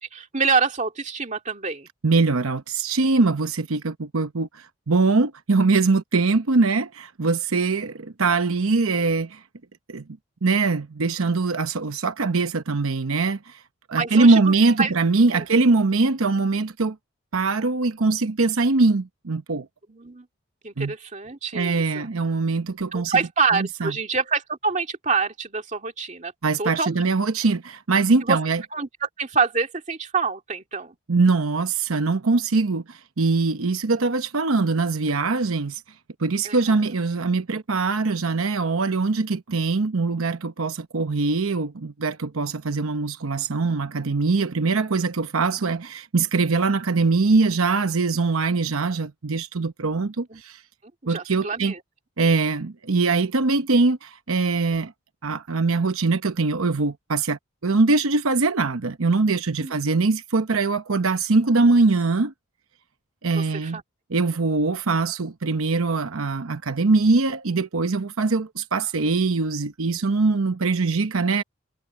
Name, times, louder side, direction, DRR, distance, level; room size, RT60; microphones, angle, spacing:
voice 1, 0.0-1.9 14.0-14.5 14.8-14.9 15.3-15.4 19.9-20.3 20.6-22.1 22.9-26.3 26.6-27.0 28.2-28.4 28.7-31.0 36.4-36.8 50.3-50.4 51.0-51.8 59.6-59.7 63.3-63.8, right 5 dB, 35° right, 2.3 m, -26 dB
voice 2, 2.0-9.4 9.9-10.0 10.4-13.6 13.9-17.0 17.3-19.7 20.8-20.9 21.5-23.2 23.5-23.9 26.4-28.6 31.1-35.8 36.2-50.6 51.1-51.7 52.2-54.9 55.2-62.3 63.2-63.8 64.1-71.4, right 3 dB, 85° right, 0.9 m, -22 dB
head